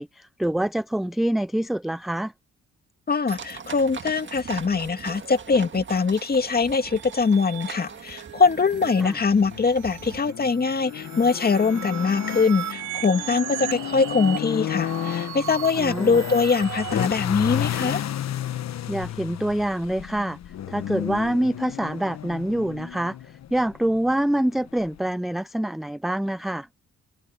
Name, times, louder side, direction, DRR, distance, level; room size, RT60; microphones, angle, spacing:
voice 1, 0.0-2.3 9.0-9.1 15.8-16.2 18.9-20.4 20.7-26.7, right 1 dB, ahead, 0.4 m, -26 dB
voice 2, 3.1-18.0, left 4 dB, 30° left, 2.1 m, -22 dB
sound 1, 3.3-10.2, right 6 dB, 40° right, 2.1 m, -41 dB
sound 2, 6.4-17.1, right 15 dB, 85° right, 6.3 m, -37 dB
sound 3, 8.5-25.1, left 11 dB, 60° left, 1.2 m, -33 dB
cardioid pair, 90°, 30 cm